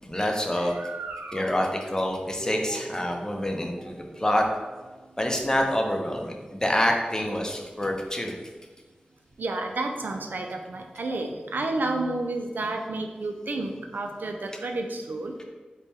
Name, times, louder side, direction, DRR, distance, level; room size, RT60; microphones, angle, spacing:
voice 1, 0.0-0.8 1.3-4.5 5.2-8.3, left 1 dB, 20° left, 2 dB, 0.6 m, -26 dB
voice 2, 0.6-1.6 2.0-2.2 2.7-2.8 3.1-3.2 9.4-15.3, right 2 dB, 75° right, 3 dB, 0.4 m, -31 dB
Harp, 2.4-8.4, right 1 dB, 80° left, 0.9 m, -48 dB
3.3 x 2.2 x 4.2 m, 1.3 s
cardioid pair, 50°, 3 cm